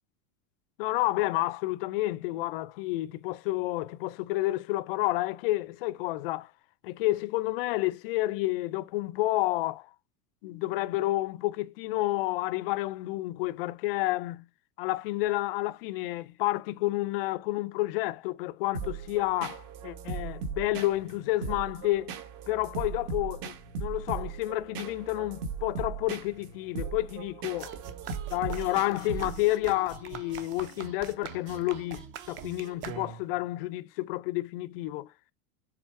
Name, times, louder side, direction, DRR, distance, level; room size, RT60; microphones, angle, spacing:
voice 1, 0.8-6.5 6.8-9.8 10.4-14.5 14.8-22.1 22.5-27.8 28.3-35.1, left 18 dB, 40° left, 0.4 m, -30 dB
sound 1, 18.7-29.6, right 5 dB, 45° right, 1.3 m, -38 dB
sound 2, 27.6-33.4, right 8 dB, 25° right, 0.6 m, -43 dB
7.4 x 3.3 x 4.5 m
supercardioid pair, 165°, 44 cm